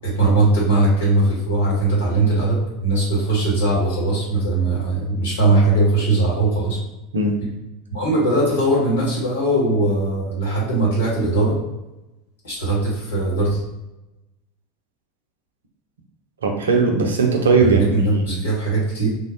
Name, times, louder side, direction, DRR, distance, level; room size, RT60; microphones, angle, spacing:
voice 1, 0.0-6.8 7.9-11.6 12.4-13.6 17.6-19.1, right 2 dB, 70° left, -5 dB, 1.3 m, -20 dB
voice 2, 16.4-18.4, right 4 dB, 75° right, 2 dB, 0.5 m, -19 dB
3.4 x 2.2 x 2.6 m, 0.97 s
figure-of-eight pair, 80°, 0 cm